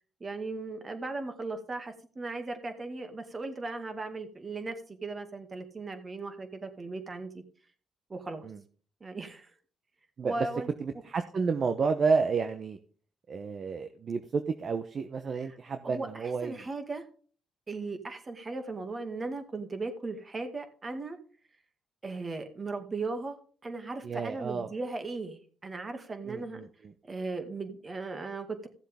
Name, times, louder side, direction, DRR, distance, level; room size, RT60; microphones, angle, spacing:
voice 1, 0.2-7.4 8.1-8.5 9.0-9.5 10.2-10.7 15.4-15.6 15.8-17.1 17.7-21.2 22.0-26.6 27.1-28.7, right 3 dB, 30° right, 7 dB, 2.2 m, -37 dB
voice 2, 10.8-12.8 13.3-16.6 24.0-24.7 26.3-26.7, right 5 dB, 45° right, 8 dB, 0.9 m, -30 dB
15.5 x 7.3 x 3.6 m, 0.42 s
cardioid pair, 90°, 0 cm